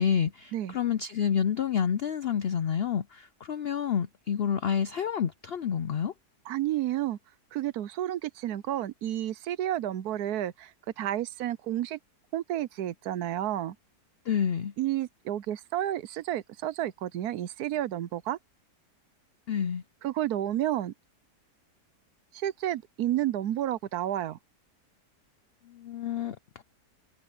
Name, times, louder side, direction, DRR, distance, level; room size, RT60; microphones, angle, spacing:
voice 1, 0.0-6.1 14.3-14.7 19.5-19.8 25.8-26.6, left 8 dB, 85° left, 0.5 m, -29 dB
voice 2, 6.5-7.2 7.5-10.7 11.0-12.0 12.3-13.8 14.8-18.4 20.0-20.9 22.3-24.4, right 12 dB, 70° right, 1.1 m, -31 dB
omnidirectional pair, 1.8 m